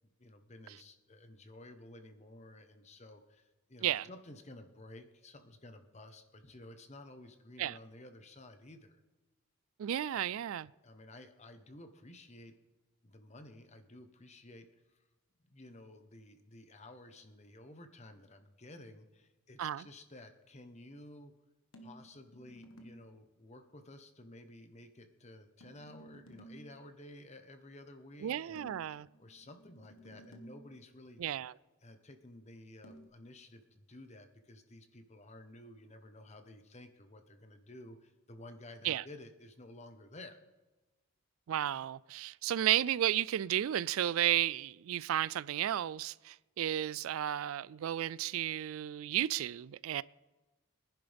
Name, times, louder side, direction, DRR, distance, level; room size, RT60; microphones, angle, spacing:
voice 1, 0.2-9.0 10.0-10.2 10.8-12.5 13.0-15.0 15.5-21.3 21.8-28.7 29.2-31.2 31.8-40.4, left 1 dB, 30° left, 1.1 m, -53 dB
voice 2, 9.8-10.7 19.6-19.8 28.2-29.1 31.2-31.5 38.8-39.0 41.5-50.0, right 11 dB, 75° right, 0.3 m, -33 dB
sound 1, 21.7-23.1 25.6-26.8 28.6-30.8 32.8-33.1, right 1 dB, 75° left, 1.4 m, -55 dB
23.5 x 10.5 x 3.5 m
head